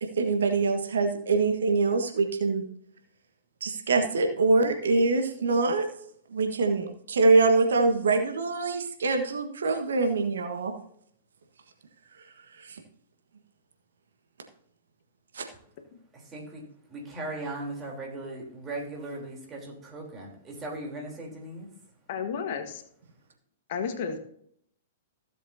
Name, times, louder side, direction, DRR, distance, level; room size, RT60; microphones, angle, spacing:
voice 1, 0.0-2.6 3.6-5.8 6.3-10.7 12.6-12.8 15.3-15.4, right 3 dB, 70° right, 5 dB, 1.4 m, -24 dB
voice 2, 16.1-16.6 16.9-21.7, right 2 dB, 20° right, 0 dB, 3.5 m, -38 dB
voice 3, 22.1-22.8 23.7-24.2, left 6 dB, 50° left, 7 dB, 1.4 m, -32 dB
16.0 x 7.6 x 2.7 m, 0.66 s
figure-of-eight pair, 105°, 0 cm